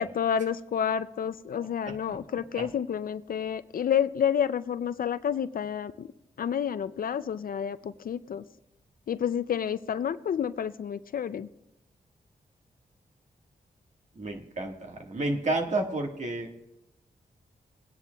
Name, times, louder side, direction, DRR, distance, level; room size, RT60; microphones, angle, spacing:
voice 1, 0.0-6.1 6.4-8.4 9.1-11.5, left 8 dB, 65° left, 13 dB, 0.4 m, -29 dB
voice 2, 1.9-2.2 2.5-2.7 14.1-16.5, right 2 dB, 50° right, 2 dB, 1.6 m, -31 dB
22.0 x 9.7 x 2.3 m, 0.88 s
wide cardioid pair, 85°, 16 cm